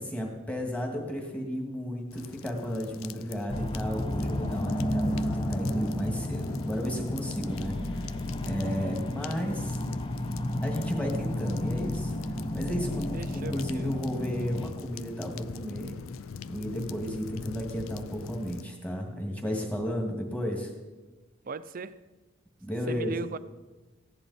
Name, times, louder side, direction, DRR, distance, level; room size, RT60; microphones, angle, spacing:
voice 1, 0.0-8.0 8.4-9.8 10.6-12.1 12.5-16.0 16.5-20.7 22.6-23.2, equal, 5° left, 2.0 m, -33 dB
sound 1, 2.1-18.6, left 6 dB, 85° left, 0.4 m, -43 dB
sound 2, 3.5-14.7, left 1 dB, 25° left, 0.8 m, -32 dB
voice 2, 13.1-13.9 21.5-22.0 22.9-23.4, right 4 dB, 45° right, 0.5 m, -37 dB
16.0 x 10.5 x 4.2 m
head